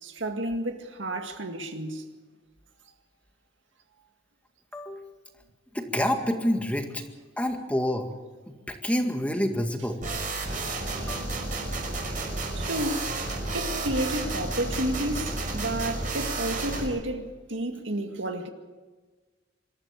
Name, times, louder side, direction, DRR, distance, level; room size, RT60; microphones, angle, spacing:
voice 1, 0.0-2.0 11.0-11.2 12.5-13.1 13.5-18.5, right 1 dB, 85° right, 2.1 m, -31 dB
voice 2, 4.7-5.1 5.7-7.0 7.4-8.1 8.5-10.0 10.9-11.3, left 1 dB, 10° left, 2.0 m, -28 dB
sound 1, 10.0-16.9, right 2 dB, 45° right, 5.8 m, -31 dB
26.0 x 13.5 x 8.5 m
head